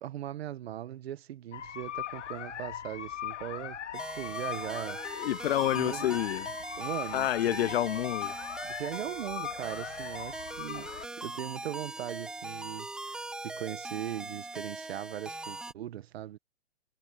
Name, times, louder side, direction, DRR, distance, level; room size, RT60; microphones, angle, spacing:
voice 1, 0.0-5.3 5.7-6.1 6.8-7.7 8.6-10.9 11.2-16.4, right 12 dB, 55° right, 1.7 m, -39 dB
sound 1, 1.5-11.1, left 11 dB, 75° left, 2.5 m, -40 dB
sound 2, 3.9-15.7, right 2 dB, ahead, 0.5 m, -41 dB
voice 2, 5.1-6.5 7.1-8.3, left 13 dB, 55° left, 0.5 m, -29 dB
hypercardioid pair, 145°, 36 cm